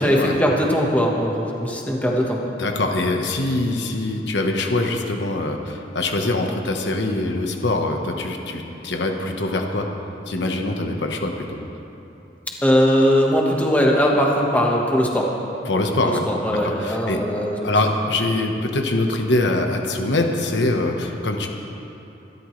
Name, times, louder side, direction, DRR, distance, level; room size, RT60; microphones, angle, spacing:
voice 1, 0.0-2.4 12.6-15.3 16.0-17.7, equal, 10° left, -2 dB, 1.5 m, -20 dB
voice 2, 2.6-9.9 10.3-11.6 15.7-16.2 16.6-17.2 17.6-21.5, left 2 dB, 80° left, 3 dB, 1.3 m, -23 dB
24.5 x 12.5 x 3.3 m, 2.9 s
head